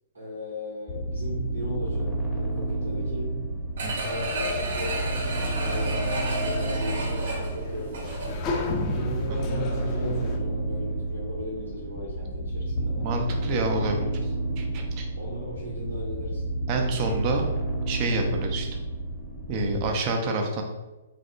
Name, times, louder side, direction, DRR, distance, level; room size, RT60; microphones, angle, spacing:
voice 1, 0.1-3.4 4.0-8.4 8.9-13.4 15.2-16.4, equal, 85° right, -5 dB, 0.9 m, -36 dB
sound 1, 0.9-19.9, right 2 dB, ahead, 0.8 m, -30 dB
sound 2, 3.8-10.4, left 3 dB, 30° left, 0.4 m, -36 dB
voice 2, 3.8-4.1 9.3-9.4 13.0-14.1 14.6-15.1 16.7-17.5 17.9-18.7 19.5-20.6, right 2 dB, 40° right, 3 dB, 0.5 m, -28 dB
sound 3, 3.8-8.6 9.0-9.1, right 1 dB, 60° right, 0.9 m, -32 dB
3.3 x 2.1 x 2.6 m, 1.1 s
figure-of-eight pair, 120°, 0 cm